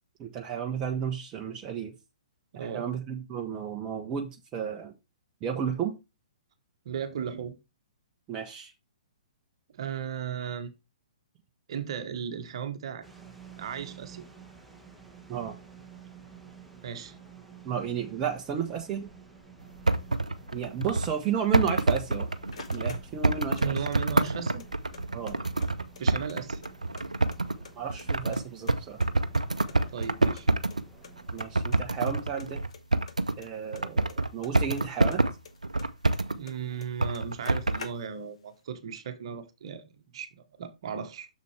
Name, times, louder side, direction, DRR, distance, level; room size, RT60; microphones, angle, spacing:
voice 1, 0.2-1.9 2.5-4.9 5.4-6.0 8.3-8.7 15.3-15.5 17.6-19.1 20.5-22.3 22.7-23.7 25.1-25.4 27.7-29.0 31.3-32.6 33.4-35.3, right 8 dB, 25° right, 0.8 m, -33 dB
voice 2, 2.5-2.9 6.8-7.6 9.7-10.7 11.7-13.1 13.6-14.3 16.8-17.2 23.6-24.6 26.0-26.6 29.9-30.5 36.3-41.3, right 7 dB, 50° right, 1.2 m, -36 dB
sound 1, 13.0-31.6, right 5 dB, ahead, 1.4 m, -52 dB
sound 2, 19.6-21.1 21.5-30.8 31.2-33.5 33.7-36.4 37.0-37.8, right 2 dB, 85° right, 0.6 m, -27 dB
sound 3, 22.2-23.7 23.9-25.0 25.3-25.4 25.6-27.0 27.3-28.1 28.3-29.8 30.0-30.1 30.4-30.5 30.7-30.8 31.0-31.4 31.7-32.1 32.4-34.8 35.1-36.5 36.8-36.9 37.1-38.4, left 5 dB, 60° left, 1.2 m, -47 dB
6.7 x 6.6 x 3.3 m
figure-of-eight pair, 120°, 4 cm